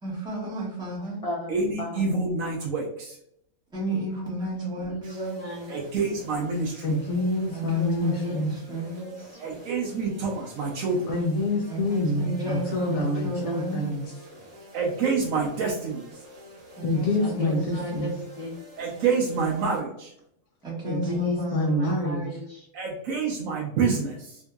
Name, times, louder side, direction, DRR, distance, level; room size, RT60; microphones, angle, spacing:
voice 1, 0.0-1.2 3.7-5.2 7.5-8.9 11.7-13.8 16.8-18.1 20.6-21.8, right 1 dB, 5° right, -6 dB, 1.0 m, -33 dB
voice 2, 0.9-2.2 4.5-5.7 8.0-9.6 12.1-13.6 17.2-18.1 18.4-18.5 21.0-22.7, equal, 45° left, -2 dB, 0.4 m, -37 dB
voice 3, 1.5-3.2 5.7-6.9 9.4-11.1 14.7-16.0 18.8-20.1 22.7-24.4, right 4 dB, 75° right, -3 dB, 1.0 m, -27 dB
sound 1, 5.0-19.8, equal, 35° right, 1.3 m, -48 dB
voice 4, 6.8-8.5 11.1-14.0 16.8-18.1 20.8-22.3, left 1 dB, 85° left, -3 dB, 1.1 m, -26 dB
3.7 x 2.7 x 2.2 m, 0.74 s
omnidirectional pair, 1.4 m